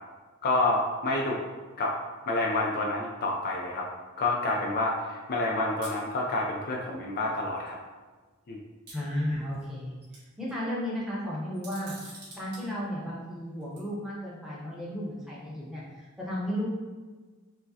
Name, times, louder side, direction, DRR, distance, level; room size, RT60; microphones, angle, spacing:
voice 1, 0.4-1.4 1.8-2.0 2.3-3.9 4.2-7.8 8.5-8.6, left 2 dB, 50° left, -1 dB, 0.4 m, -28 dB
sound 1, 5.8-6.0 7.2-7.3 7.7-7.8 8.9-9.7 10.0-10.5 11.5-12.6 13.6-13.8, right 2 dB, 50° right, 1.4 m, -46 dB
voice 2, 8.9-10.0 10.4-16.6, equal, 5° right, -7 dB, 0.8 m, -34 dB
4.5 x 2.1 x 2.7 m, 1.4 s
head